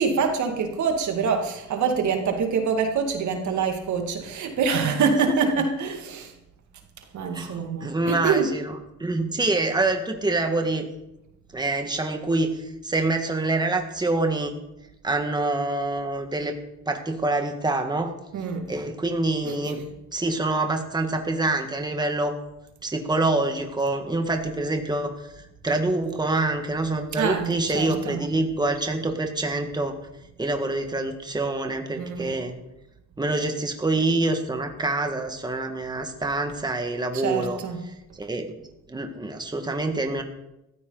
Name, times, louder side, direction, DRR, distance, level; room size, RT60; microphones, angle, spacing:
voice 1, 0.0-6.3 7.1-8.5 18.3-18.7 19.5-19.8 27.2-28.2 32.0-32.4 37.1-37.8, right 5 dB, 70° right, 4 dB, 2.2 m, -25 dB
voice 2, 7.3-8.7 9.0-10.9 11.5-14.6 15.0-16.6 16.9-18.1 18.7-19.8 20.1-22.4 22.8-30.0 30.4-32.5 33.2-37.6 37.9-38.6 38.9-40.2, right 2 dB, 15° right, 5 dB, 1.7 m, -26 dB
15.5 x 14.0 x 4.0 m, 0.89 s
cardioid pair, 90°, 30 cm